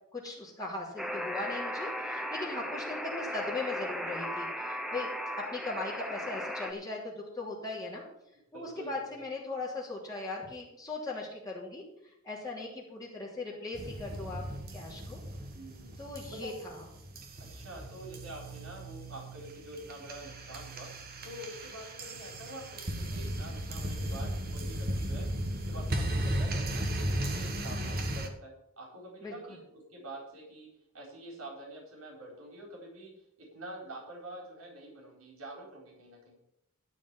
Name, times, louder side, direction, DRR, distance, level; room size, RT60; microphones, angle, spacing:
voice 1, 0.1-8.0 8.5-14.4 14.7-15.2 16.0-16.8 27.4-28.1 29.2-29.6, left 2 dB, 15° left, -4 dB, 3.0 m, -39 dB
Alarm, 1.0-6.7, equal, ahead, 1.0 m, -36 dB
voice 2, 8.5-9.0 15.5-15.9 16.2-16.5 17.5-20.9 21.2-25.2 25.5-30.7 30.9-36.4, right 1 dB, 75° right, -1 dB, 4.3 m, -46 dB
sound 1, 13.7-28.3, right 1 dB, 45° right, 1.7 m, -36 dB
12.5 x 5.2 x 9.0 m, 0.80 s
head